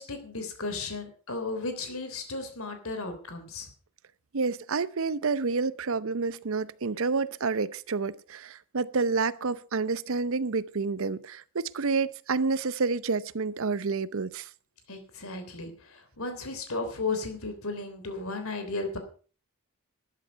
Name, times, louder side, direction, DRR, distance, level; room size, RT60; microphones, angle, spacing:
voice 1, 0.0-3.7 14.9-19.0, left 3 dB, 65° left, 3.4 m, -35 dB
voice 2, 4.3-14.5, right 4 dB, 65° right, 0.7 m, -29 dB
12.5 x 11.0 x 5.7 m
head